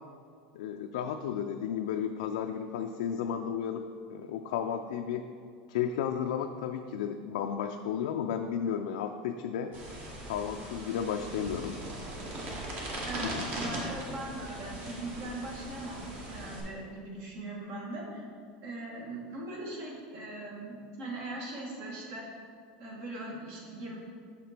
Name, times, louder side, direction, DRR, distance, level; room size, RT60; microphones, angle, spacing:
voice 1, 0.6-3.8 4.1-5.2 5.7-9.7 10.3-11.8 13.2-13.5, left 8 dB, 90° left, 5 dB, 0.3 m, -33 dB
sound 1, 9.7-16.6, right 1 dB, 45° right, 1.6 m, -40 dB
voice 2, 13.1-18.3 18.6-22.3 22.8-24.0, right 2 dB, 60° right, -3 dB, 1.9 m, -40 dB
6.5 x 5.0 x 4.4 m, 2.1 s
supercardioid pair, 140°, 4 cm